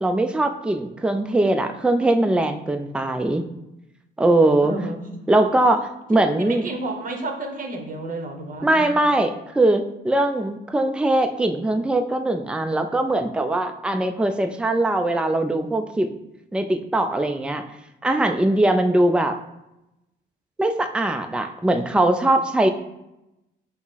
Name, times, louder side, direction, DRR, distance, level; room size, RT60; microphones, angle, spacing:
voice 1, 0.0-3.5 4.2-4.7 5.3-6.7 8.6-16.1 16.5-17.6 18.0-19.4 20.6-22.7, right 1 dB, 5° right, 7 dB, 0.3 m, -21 dB
voice 2, 4.6-5.0 6.4-9.0, right 2 dB, 45° right, 3 dB, 0.9 m, -31 dB
5.7 x 2.1 x 4.0 m, 0.89 s
cardioid pair, 90°, 20 cm